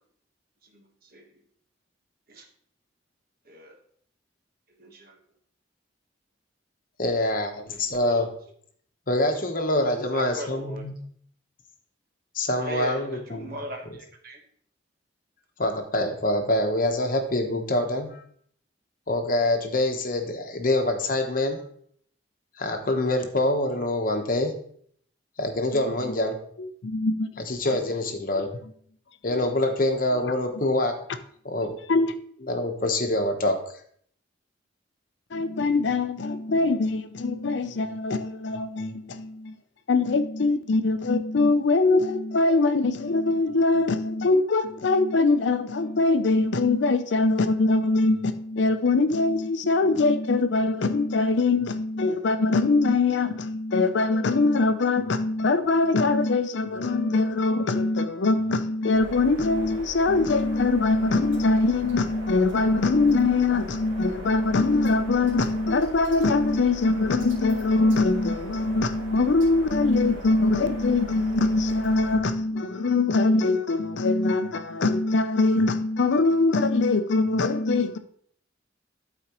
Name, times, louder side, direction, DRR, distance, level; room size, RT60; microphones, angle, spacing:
voice 1, 0.6-1.3 2.3-2.5 3.4-3.7 4.8-5.2 7.7-8.2 10.1-10.8 12.6-14.4, equal, 50° right, 1.3 m, -39 dB
voice 2, 7.0-8.3 9.1-10.9 12.3-13.5 15.6-18.1 19.1-21.6 22.6-24.5 25.4-26.4 27.5-28.5 29.2-30.9 31.4-31.7 32.5-33.6, left 1 dB, 45° left, 1.0 m, -25 dB
voice 3, 26.6-27.4 29.3-29.4 31.9-32.1 35.3-39.5 39.9-78.0, left 3 dB, 70° left, 0.5 m, -23 dB
sound 1, 58.9-72.2, equal, 85° right, 2.1 m, -40 dB
12.5 x 4.4 x 3.0 m
head